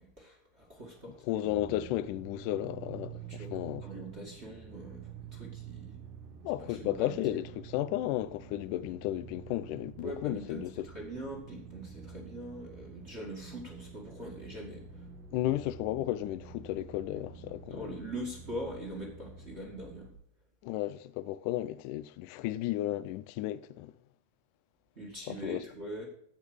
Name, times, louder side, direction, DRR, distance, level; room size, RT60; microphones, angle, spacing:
voice 1, 0.0-1.2 3.3-3.5 3.8-6.0 6.6-7.2 10.0-15.1 17.7-20.1 25.0-26.1, right 1 dB, 25° right, 1.8 m, -42 dB
voice 2, 1.2-3.9 6.4-10.9 15.3-17.9 20.6-23.9 25.3-25.6, left 14 dB, 80° left, 1.9 m, -34 dB
sound 1, 1.4-20.1, right 7 dB, 70° right, 2.8 m, -48 dB
15.5 x 5.3 x 6.3 m
omnidirectional pair, 4.2 m